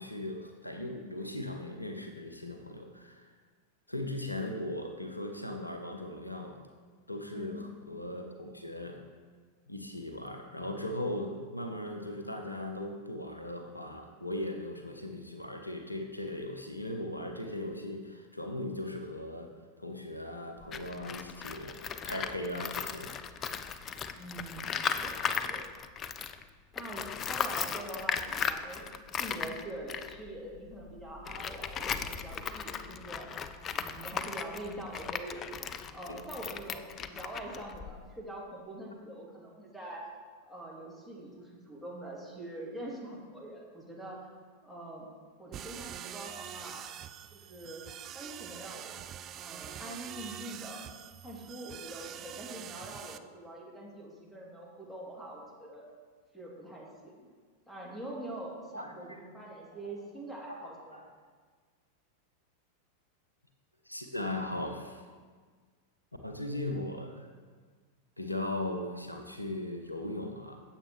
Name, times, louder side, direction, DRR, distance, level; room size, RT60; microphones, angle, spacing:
voice 1, 0.0-3.2 3.9-6.6 7.1-9.0 9.7-19.5 19.8-23.1 36.1-36.2 58.7-59.2 60.5-61.0 63.9-65.0 66.2-67.3 68.2-70.6, left 1 dB, 85° left, 5 dB, 0.8 m, -38 dB
voice 2, 7.3-7.7 24.1-25.6 26.7-28.9 29.2-40.1 40.5-44.2 44.6-45.1 45.4-46.9 47.3-47.8 48.1-49.1 49.3-50.8 51.2-55.8 56.3-57.3 57.7-61.0, right 1 dB, 5° left, -4 dB, 2.8 m, -44 dB
Tools, 20.6-26.4 26.7-38.2, left 7 dB, 30° left, 0.5 m, -37 dB
sound 1, 45.5-53.2, right 10 dB, 30° right, 0.4 m, -45 dB
15.5 x 7.5 x 3.1 m, 1.5 s
figure-of-eight pair, 90°, 0 cm